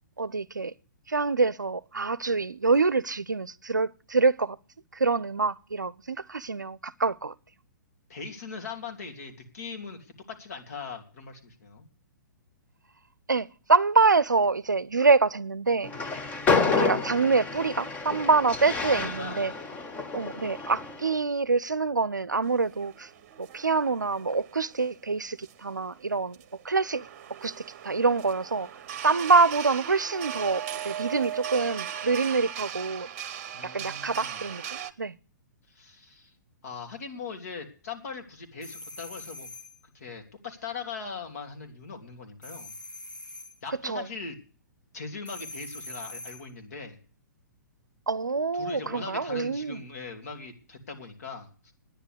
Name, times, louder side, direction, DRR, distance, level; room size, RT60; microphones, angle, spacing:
voice 1, 0.2-0.7 1.1-4.6 4.9-7.3 13.3-15.9 16.8-19.5 20.1-23.1 23.4-26.4 26.6-27.1 27.4-27.5 27.8-28.7 29.0-33.1 33.6-35.1 43.8-44.1 48.1-49.8, right 4 dB, 80° right, 0.5 m, -25 dB
voice 2, 8.1-11.9 18.7-19.5 33.5-34.5 35.7-36.3 36.6-39.5 39.9-42.7 43.6-44.4 44.9-47.0 48.6-51.7, left 5 dB, 55° left, 2.8 m, -40 dB
Train, 15.8-21.1, left 4 dB, 15° left, 1.1 m, -29 dB
sound 1, 22.5-34.9, right 9 dB, 40° right, 0.9 m, -38 dB
sound 2, 38.6-39.8 42.4-43.6 45.2-46.5, left 1 dB, 85° left, 1.8 m, -43 dB
10.0 x 10.0 x 8.0 m
figure-of-eight pair, 115°, 10 cm